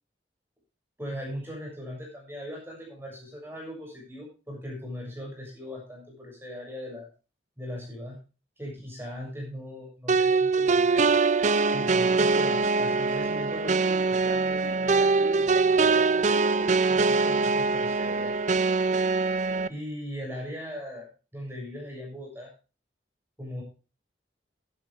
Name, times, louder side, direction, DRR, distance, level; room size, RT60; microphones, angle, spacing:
voice 1, 1.0-7.1 7.6-8.2 8.6-11.1 11.7-18.4 19.7-22.5 23.4-23.6, equal, 10° right, -2 dB, 6.9 m, -39 dB
sound 1, 10.1-19.7, right 4 dB, 40° right, 0.5 m, -23 dB
14.0 x 11.5 x 3.5 m, 0.33 s
head